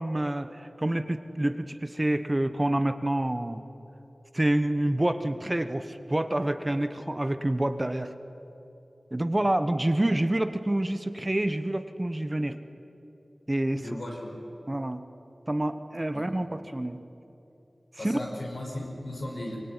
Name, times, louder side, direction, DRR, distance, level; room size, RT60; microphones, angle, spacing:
voice 1, 0.0-3.6 4.3-8.1 9.1-12.6 13.5-13.8 14.7-15.0 15.5-17.0 18.0-18.2, right 1 dB, 30° right, 10 dB, 1.3 m, -27 dB
voice 2, 13.8-14.3 16.1-16.2 18.0-19.6, left 1 dB, 75° left, -1 dB, 6.5 m, -36 dB
24.0 x 21.0 x 9.9 m, 3.0 s
wide cardioid pair, 50°, 0 cm